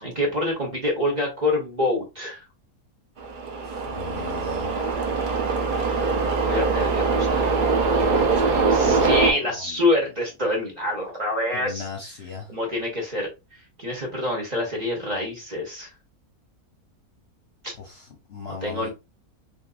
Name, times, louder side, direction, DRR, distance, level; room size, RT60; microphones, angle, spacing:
voice 1, 0.0-2.4 6.1-7.5 8.7-11.8 12.5-13.3 13.8-15.9 17.6-17.7 18.6-18.9, left 1 dB, 35° right, 0.9 m, -26 dB
sound 1, 3.2-9.3, right 4 dB, 60° right, 0.5 m, -22 dB
voice 2, 3.6-4.8 8.0-9.9 11.5-12.5 17.8-18.9, left 5 dB, 55° left, 0.8 m, -37 dB
3.6 x 2.5 x 2.4 m
omnidirectional pair, 1.5 m